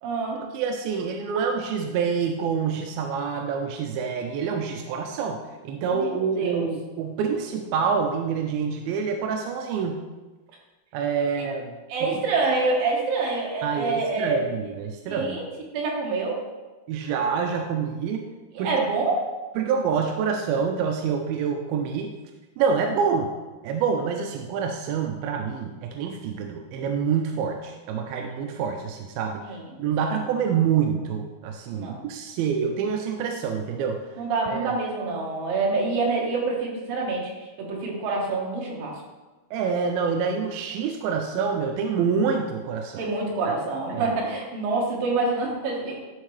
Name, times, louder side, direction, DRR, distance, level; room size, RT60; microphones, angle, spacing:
voice 1, 0.0-0.4 5.9-6.7 11.9-14.4 15.1-15.4 15.7-16.4 18.5-19.2 29.4-29.6 30.0-30.1 31.7-32.0 34.2-38.9 43.0-46.0, right 3 dB, 65° right, -2 dB, 2.9 m, -26 dB
voice 2, 0.5-10.0 10.9-12.1 13.6-15.4 16.9-18.2 18.6-18.7 19.6-22.1 22.6-23.3 23.6-29.4 29.8-34.0 34.5-34.6 39.5-43.1 43.5-43.6 43.9-44.1, right 6 dB, 80° right, 3 dB, 2.2 m, -27 dB
12.0 x 4.5 x 3.2 m, 1.2 s
omnidirectional pair, 4.7 m